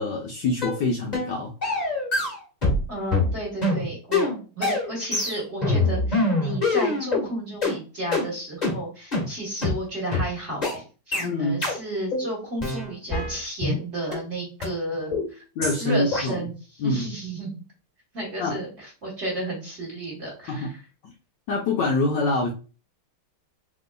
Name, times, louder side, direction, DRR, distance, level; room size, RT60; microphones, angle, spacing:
voice 1, 0.0-1.5 11.2-11.6 15.6-16.4 16.8-17.1 18.4-18.6 20.5-20.7 21.5-22.5, left 2 dB, 70° left, 0 dB, 1.1 m, -25 dB
sound 1, 0.6-0.8 1.1-1.3 1.6-2.8 3.1-7.3 7.6-7.8 8.1-8.3 8.6-8.8 9.1-9.3 9.6-9.8 10.1-10.3 10.6-10.8 11.1-11.3 11.6-11.8 12.1-12.3 12.6-13.8 14.1-14.2 14.6-14.7 15.1-15.3 15.6-15.8 16.1-16.3, left 2 dB, 20° left, 1.3 m, -24 dB
voice 2, 2.9-4.3 4.6-10.8 11.1-15.4 15.8-17.6 18.1-20.8, right 1 dB, 40° right, -3 dB, 1.2 m, -32 dB
3.8 x 3.6 x 2.2 m, 0.35 s
omnidirectional pair, 2.4 m